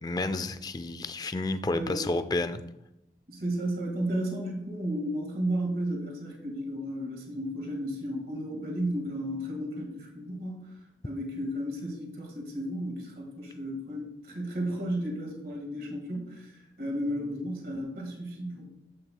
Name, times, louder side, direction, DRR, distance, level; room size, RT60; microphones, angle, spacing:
voice 1, 0.0-2.6, left 2 dB, 25° left, 10 dB, 0.4 m, -30 dB
voice 2, 1.7-2.0 3.3-10.7 11.0-18.7, right 1 dB, 55° right, 0 dB, 1.8 m, -33 dB
9.7 x 7.8 x 2.2 m, 0.86 s
head